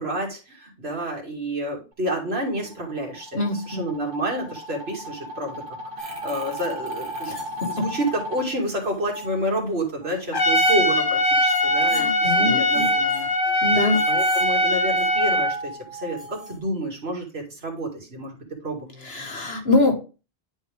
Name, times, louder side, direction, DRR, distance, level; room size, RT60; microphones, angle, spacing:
voice 1, 0.0-5.6 6.0-7.4 7.7-13.3 14.1-19.3, right 1 dB, 75° right, 0 dB, 2.6 m, -29 dB
sound 1, 2.3-8.4, left 1 dB, 55° right, 1.6 m, -36 dB
voice 2, 3.3-3.8 7.3-7.7 11.9-12.9 13.6-14.0 19.0-20.0, left 2 dB, 70° left, 3 dB, 1.9 m, -24 dB
sound 2, 6.0-8.3 8.6-9.5 10.0-12.1 12.6-16.6, right 2 dB, 35° right, 1.5 m, -37 dB
Trumpet, 10.3-15.6, equal, 50° left, 1.5 m, -21 dB
10.0 x 4.5 x 3.5 m, 0.31 s
omnidirectional pair, 1.1 m